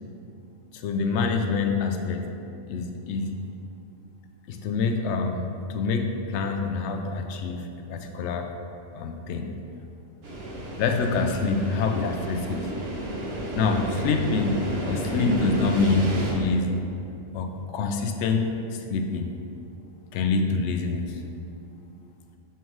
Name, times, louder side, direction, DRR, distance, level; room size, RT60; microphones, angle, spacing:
voice 1, 0.7-2.2 2.7-3.3 4.5-5.4 5.7-8.5 8.9-9.5 10.8-12.7 13.5-16.8 17.3-18.5 18.9-19.3 20.1-21.1, left 4 dB, 70° left, 5 dB, 0.8 m, -26 dB
sound 1, 10.2-16.3, right 1 dB, 55° right, 1.1 m, -31 dB
5.7 x 5.6 x 3.1 m, 2.6 s
omnidirectional pair, 1.3 m